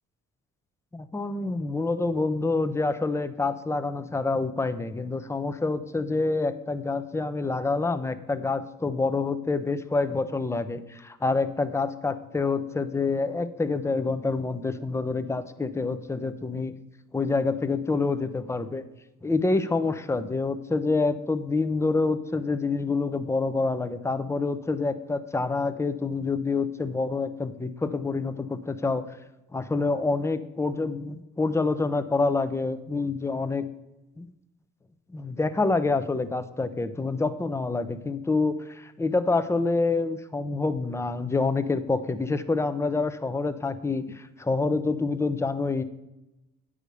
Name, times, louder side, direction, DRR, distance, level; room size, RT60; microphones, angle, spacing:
voice 1, 0.9-16.7 17.1-18.8 19.2-29.0 29.5-33.7 34.2-34.3 35.1-45.8, left 3 dB, 10° left, 11 dB, 0.6 m, -27 dB
8.9 x 5.0 x 6.7 m, 0.98 s
cardioid pair, 90°, 30 cm